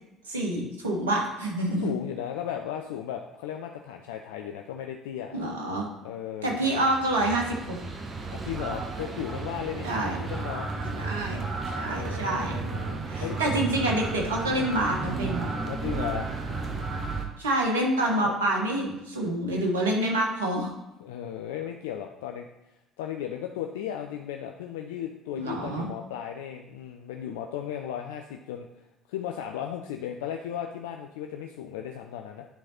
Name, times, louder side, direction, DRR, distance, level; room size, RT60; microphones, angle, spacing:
voice 1, 0.3-1.9 5.3-5.9 6.4-7.6 9.8-10.2 11.0-11.5 11.7-12.6 13.1-15.4 17.4-20.7 25.4-25.9, right 1 dB, 75° right, 0 dB, 1.4 m, -27 dB
voice 2, 1.8-5.4 6.0-6.8 8.3-10.7 11.8-13.4 15.7-16.3 18.1-18.4 21.0-22.5 23.0-28.7 29.1-32.5, left 10 dB, 70° left, 4 dB, 0.4 m, -36 dB
sound 1, 6.5-17.3, right 3 dB, 35° right, 1.2 m, -33 dB
10.0 x 4.0 x 4.3 m, 0.92 s
figure-of-eight pair, 55°, 0 cm